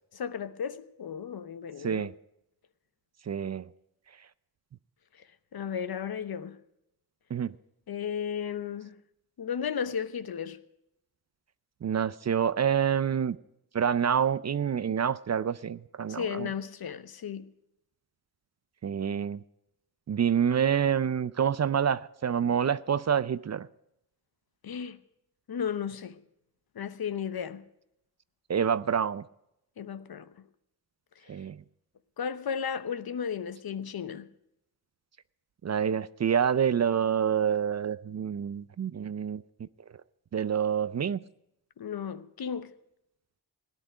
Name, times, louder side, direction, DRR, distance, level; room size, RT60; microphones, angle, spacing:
voice 1, 0.1-2.1 5.5-6.6 7.9-9.0 9.4-10.6 16.1-17.5 24.6-25.0 25.5-26.2 26.7-27.6 29.8-30.3 31.3-31.4 32.2-34.3 41.8-42.7, left 7 dB, 60° left, 0.9 m, -34 dB
voice 2, 3.3-3.7 7.3-7.5 11.8-13.4 13.7-16.5 18.8-19.4 20.1-23.7 28.5-29.2 31.3-31.6 35.6-39.7 40.3-41.2, right 8 dB, 40° right, 0.5 m, -27 dB
17.0 x 10.5 x 5.0 m
cardioid pair, 75°, 42 cm